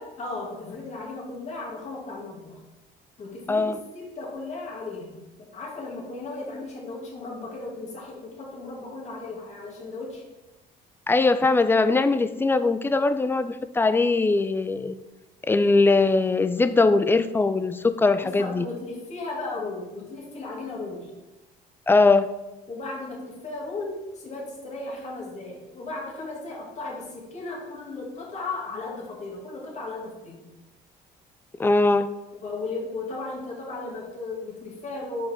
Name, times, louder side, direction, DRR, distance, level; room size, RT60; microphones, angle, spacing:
voice 1, 0.2-2.6 3.2-10.2 18.2-21.1 22.7-30.4 32.3-35.3, left 3 dB, 40° left, -3 dB, 2.3 m, -36 dB
voice 2, 3.5-3.8 11.1-15.0 15.5-18.7 21.9-22.3 31.6-32.1, left 3 dB, 15° left, 12 dB, 0.4 m, -21 dB
5.6 x 5.1 x 5.2 m, 1.0 s
cardioid pair, 110°, 17 cm